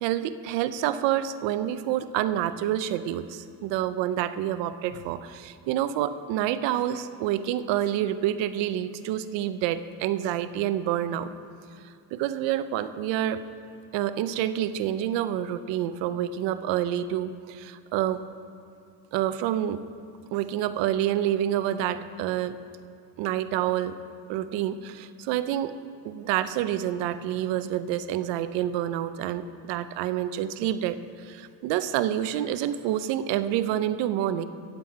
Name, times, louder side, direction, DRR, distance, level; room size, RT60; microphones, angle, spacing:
voice 1, 0.0-11.3 12.1-13.4 13.9-18.2 19.1-19.8 20.3-22.6 23.2-24.0 24.3-25.8 26.0-34.4, right 11 dB, 90° right, 12 dB, 0.7 m, -28 dB
17.5 x 7.6 x 4.7 m, 2.4 s
cardioid pair, 100°, 43 cm